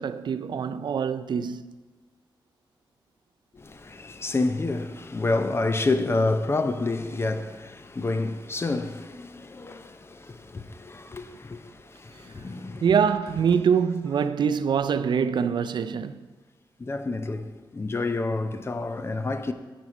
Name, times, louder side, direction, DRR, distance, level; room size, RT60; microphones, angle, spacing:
voice 1, 0.0-1.7 12.8-16.2, right 7 dB, 65° right, 0.4 m, -24 dB
voice 2, 3.5-12.9 13.5-13.6 16.8-19.5, left 2 dB, 30° left, 0.6 m, -29 dB
9.4 x 6.2 x 4.9 m
wide cardioid pair, 110°, 8 cm